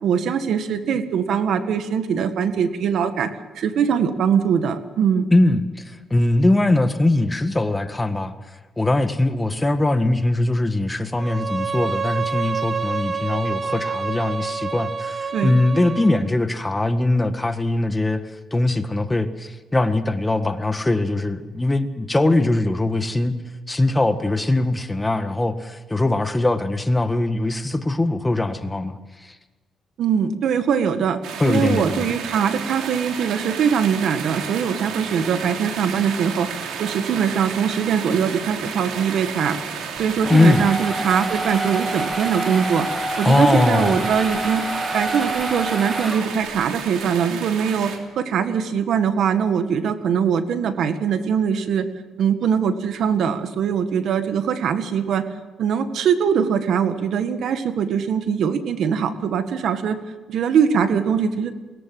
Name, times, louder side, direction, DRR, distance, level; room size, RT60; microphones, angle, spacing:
voice 1, 0.0-3.3 3.6-5.3 15.3-15.6 30.0-31.2 31.4-39.6 40.0-42.9 43.2-51.9 52.2-55.3 55.6-60.0 60.3-61.5, right 7 dB, 70° right, 9 dB, 1.8 m, -22 dB
voice 2, 5.3-8.3 8.8-18.2 18.5-23.3 23.7-29.4 31.4-32.1 40.3-40.7 43.2-44.0, left 2 dB, 15° left, 9 dB, 1.7 m, -21 dB
Bowed string instrument, 11.1-16.3, right 5 dB, 35° right, 1.3 m, -28 dB
sound 1, 31.2-48.0, right 6 dB, 85° right, 3.0 m, -32 dB
sound 2, 40.0-46.7, right 2 dB, 20° right, 2.9 m, -27 dB
22.5 x 18.0 x 7.8 m, 1.3 s
cardioid pair, 90°, 0 cm